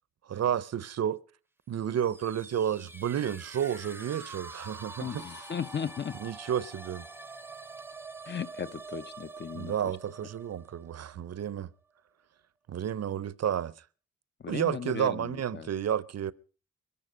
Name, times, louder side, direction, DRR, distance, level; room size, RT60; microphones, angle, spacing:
voice 1, 0.2-1.2 1.7-5.2 6.2-7.1 9.5-11.7 12.7-13.8 14.5-16.3, right 9 dB, 55° right, 0.6 m, -31 dB
sound 1, 1.8-11.6, right 3 dB, 5° right, 0.6 m, -46 dB
voice 2, 5.0-6.2 8.3-9.9 14.4-15.7, left 7 dB, 35° left, 0.7 m, -36 dB
22.0 x 11.0 x 5.0 m
cardioid pair, 95°, 31 cm